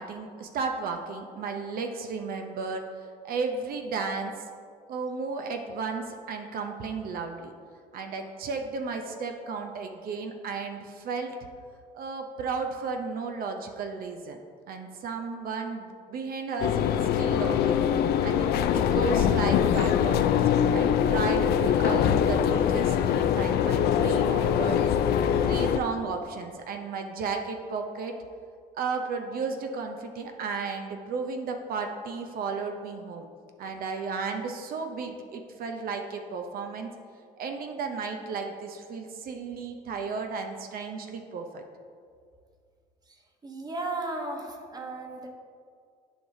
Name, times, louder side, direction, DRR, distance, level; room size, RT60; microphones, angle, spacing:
voice 1, 0.0-2.8 3.2-4.4 4.9-7.5 7.9-11.4 11.9-14.4 14.7-16.9 17.2-17.8 18.2-24.8 25.4-28.1 28.7-33.3 33.6-36.9 37.4-41.6, right 4 dB, 60° right, 5 dB, 0.6 m, -34 dB
sound 1, 16.6-25.8, left 8 dB, 70° left, 0.4 m, -23 dB
voice 2, 43.4-45.3, right 2 dB, 25° right, 2 dB, 1.0 m, -35 dB
11.0 x 4.8 x 2.7 m, 2.2 s
cardioid pair, 110°, 17 cm